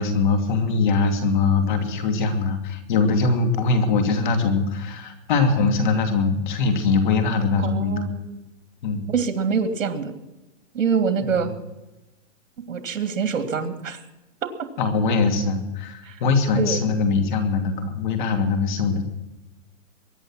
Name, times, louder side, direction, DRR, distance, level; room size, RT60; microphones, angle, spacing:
voice 1, 0.0-8.0 8.8-9.1 11.2-11.6 14.8-19.0, left 4 dB, 40° left, 7 dB, 2.6 m, -22 dB
voice 2, 7.6-8.4 9.1-10.1 10.7-11.5 12.7-14.0 16.0-16.2 16.6-16.8, right 6 dB, 75° right, 7 dB, 2.8 m, -25 dB
22.5 x 9.6 x 6.2 m, 1.0 s
hypercardioid pair, 165°, 39 cm